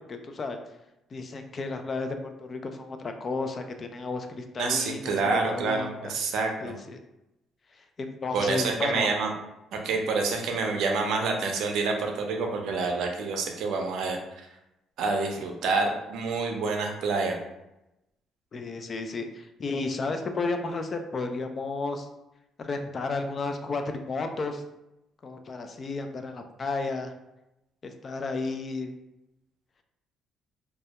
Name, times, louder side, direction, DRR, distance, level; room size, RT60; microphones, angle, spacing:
voice 1, 0.1-0.6 1.1-6.1 6.6-7.0 7.8-9.1 18.5-22.1 22.6-24.6 25.2-27.1 27.8-28.9, left 3 dB, 40° left, 6 dB, 0.3 m, -33 dB
voice 2, 4.6-6.7 8.3-9.3 9.7-14.2 15.0-17.4, right 4 dB, 75° right, 2 dB, 0.4 m, -27 dB
2.2 x 2.1 x 2.8 m, 0.91 s
cardioid pair, 90°, 0 cm